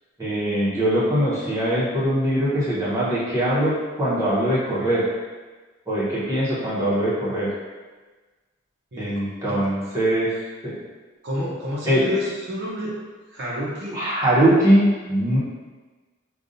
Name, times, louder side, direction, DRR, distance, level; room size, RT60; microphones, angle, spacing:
voice 1, 0.2-5.1 5.9-7.5 9.0-10.3 10.6-10.7 11.8-12.1 13.9-15.4, right 1 dB, 15° right, -9 dB, 0.9 m, -21 dB
voice 2, 11.2-12.9 13.3-14.1, equal, 60° right, -5 dB, 0.8 m, -29 dB
5.1 x 2.3 x 2.6 m, 1.3 s
head